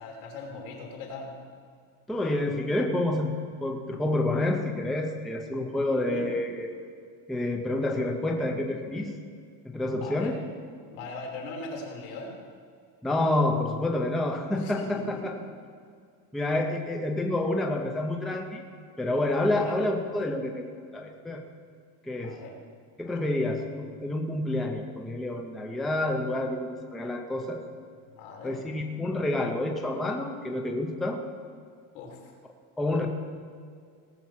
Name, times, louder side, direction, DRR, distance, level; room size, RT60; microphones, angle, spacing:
voice 1, 0.0-1.3 5.9-6.3 9.9-10.4 10.9-12.4 14.5-15.2 19.4-19.8 22.1-22.5 23.0-23.4 28.1-28.6 31.9-32.3 33.0-33.1, left 3 dB, 85° left, 0 dB, 3.3 m, -40 dB
voice 2, 2.1-3.3 3.6-6.7 7.3-9.1 9.6-10.4 13.0-15.3 16.3-18.6 19.0-20.7 20.9-21.4 22.0-22.4 23.0-27.6 28.4-31.2 32.8-33.1, left 1 dB, ahead, 3 dB, 0.4 m, -28 dB
18.0 x 7.2 x 5.7 m, 2.2 s
cardioid pair, 175°, 42 cm